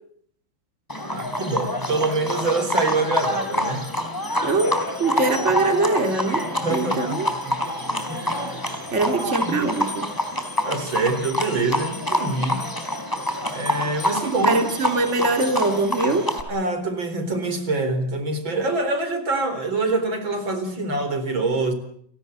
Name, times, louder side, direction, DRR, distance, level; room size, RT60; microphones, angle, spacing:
Livestock farm animals working animals, 0.9-16.4, left 1 dB, 10° left, 3.9 m, -27 dB
voice 1, 1.1-3.9 6.6-7.6 8.1-8.7 9.1-9.5 10.7-12.6 13.5-14.6 16.5-21.7, right 2 dB, 75° right, 9 dB, 4.9 m, -25 dB
voice 2, 4.4-6.4 6.7-7.3 8.9-10.1 14.4-16.3, right 3 dB, 35° right, 6 dB, 3.1 m, -22 dB
30.0 x 18.5 x 8.1 m, 0.65 s
omnidirectional pair, 2.1 m